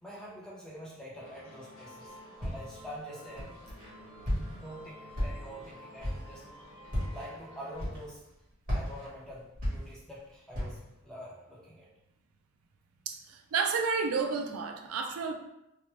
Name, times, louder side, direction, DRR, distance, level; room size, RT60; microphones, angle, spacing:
voice 1, 0.0-2.1 2.4-3.7 4.4-6.4 7.1-8.2 8.7-11.9, equal, 5° left, -7 dB, 0.6 m, -46 dB
sound 1, 1.2-7.8, equal, 65° left, 0.9 m, -51 dB
Walk footsteps, 2.4-2.8 3.4-3.9 4.2-4.7 5.1-5.6 6.0-6.3 6.8-7.3 7.8-8.3 8.6-10.2 10.5-10.9, equal, 40° right, 1.2 m, -34 dB
voice 2, 13.1-15.3, right 5 dB, 90° right, 4 dB, 0.4 m, -31 dB
2.9 x 2.0 x 3.1 m, 0.88 s
head